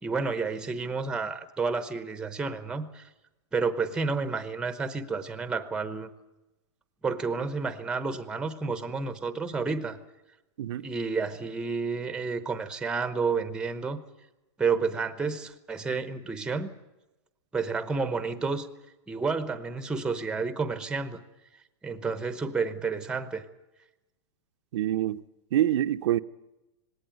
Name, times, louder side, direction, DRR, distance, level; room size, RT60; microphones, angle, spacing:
voice 1, 0.0-3.0 3.5-6.1 7.0-10.0 10.8-14.0 14.6-16.7 17.5-18.7 19.1-21.2 21.8-23.4, right 4 dB, 5° right, 0.9 m, -30 dB
voice 2, 24.7-25.2 25.5-26.2, right 12 dB, 70° right, 0.8 m, -26 dB
19.5 x 17.5 x 9.1 m
supercardioid pair, 165°, 15 cm